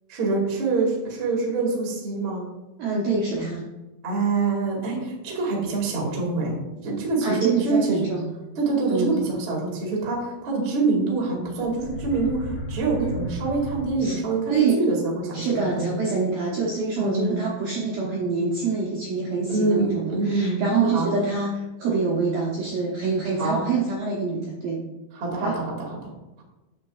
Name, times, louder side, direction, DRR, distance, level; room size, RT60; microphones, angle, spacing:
voice 1, 0.1-2.4 4.0-6.5 6.8-8.0 8.5-15.9 17.0-17.4 19.5-21.1 23.4-23.6 25.1-25.9, right 3 dB, 60° right, -3 dB, 1.2 m, -25 dB
voice 2, 2.8-3.6 7.2-8.3 8.9-9.2 14.0-14.2 14.5-14.8 15.3-24.8 25.4-25.6, right 4 dB, 75° right, -4 dB, 2.1 m, -25 dB
sound 1, 11.6-14.4, equal, 65° left, 2.7 m, -34 dB
9.3 x 7.2 x 2.4 m, 1.1 s
omnidirectional pair, 5.8 m